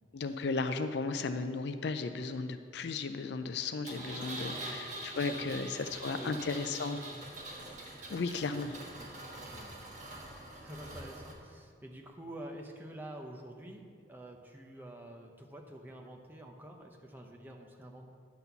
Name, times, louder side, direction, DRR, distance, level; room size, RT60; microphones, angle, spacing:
voice 1, 0.1-7.0 8.1-8.8, left 4 dB, 60° left, 9 dB, 0.4 m, -35 dB
Engine, 3.8-11.3, right 1 dB, 40° right, 1.4 m, -44 dB
voice 2, 4.5-4.9 5.3-6.4 6.9-7.2 9.0-10.3 10.6-18.1, right 1 dB, 10° right, 1 dB, 0.8 m, -48 dB
10.5 x 4.2 x 6.9 m, 2.1 s
head